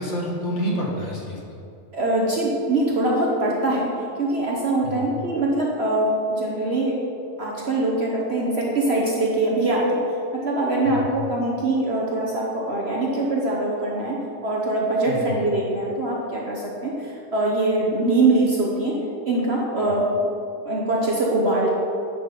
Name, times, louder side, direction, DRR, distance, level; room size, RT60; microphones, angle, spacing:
voice 1, 0.0-1.4 4.8-5.1 10.8-11.0 15.1-15.4, equal, 50° left, -2 dB, 1.4 m, -28 dB
voice 2, 1.9-7.0 7.4-14.2 14.4-20.0 20.6-21.7, right 2 dB, 45° right, -3 dB, 1.0 m, -23 dB
11.0 x 3.9 x 5.1 m, 2.6 s
omnidirectional pair, 1.8 m